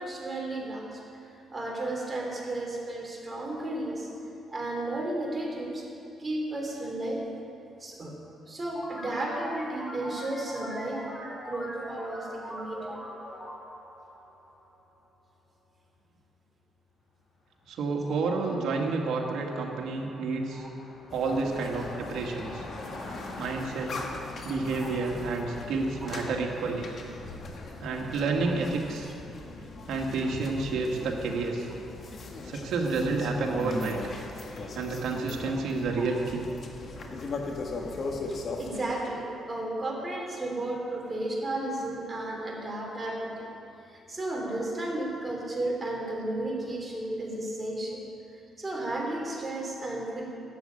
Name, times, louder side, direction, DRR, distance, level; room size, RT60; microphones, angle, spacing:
voice 1, 0.0-4.1 4.5-5.9 6.2-7.3 7.8-8.2 8.5-11.1 11.5-13.0 20.5-20.7 24.8-24.9 36.0-36.1 38.6-43.5 43.9-48.0 48.3-50.3, right 1 dB, 25° right, -1 dB, 3.3 m, -33 dB
sound 1, 8.7-15.0, equal, 5° left, 2.7 m, -42 dB
Car passing by, 17.7-17.8 18.0-29.1, left 2 dB, 70° left, 2.9 m, -48 dB
voice 2, 17.7-20.6 21.1-22.6 23.4-24.0 24.4-26.9 27.8-29.1 29.9-31.7 32.5-34.0 34.7-36.5, right 3 dB, 75° right, 0 dB, 1.9 m, -30 dB
sound 2, 21.1-38.8, left 3 dB, 50° left, 1.7 m, -39 dB
12.0 x 7.8 x 8.8 m, 2.7 s
cardioid pair, 90°, 0 cm